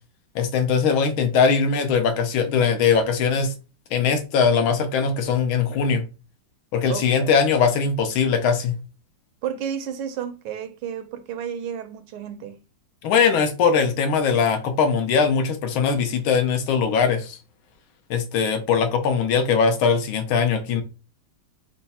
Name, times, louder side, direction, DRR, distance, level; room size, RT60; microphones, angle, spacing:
voice 1, 0.3-3.5 3.9-6.1 6.7-8.7 13.0-17.4 18.1-20.8, left 6 dB, 85° left, 1.6 m, -21 dB
voice 2, 6.9-7.3 9.4-12.6, right 8 dB, 80° right, 1.5 m, -32 dB
4.5 x 2.1 x 4.1 m
omnidirectional pair, 2.2 m